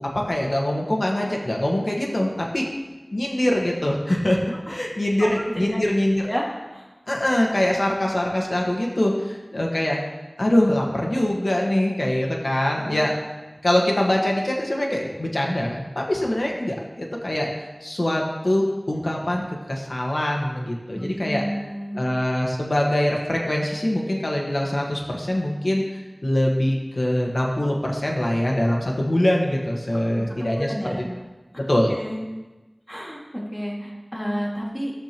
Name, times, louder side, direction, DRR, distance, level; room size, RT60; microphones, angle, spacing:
voice 1, 0.0-2.3 2.5-2.6 3.1-4.4 4.7-6.2 7.1-10.0 10.4-13.1 13.6-17.5 17.8-21.4 21.9-30.7 31.7-31.9, left 1 dB, 80° left, -1 dB, 1.4 m, -23 dB
voice 2, 5.2-5.8 6.2-6.4 6.7-6.9 12.8-12.9 20.9-22.0 30.1-30.2 30.6-31.0 31.5-31.6 31.9-32.2 32.9-34.9, equal, 10° left, -3 dB, 2.1 m, -31 dB
12.5 x 6.7 x 3.0 m, 1.1 s
wide cardioid pair, 40°, 0 cm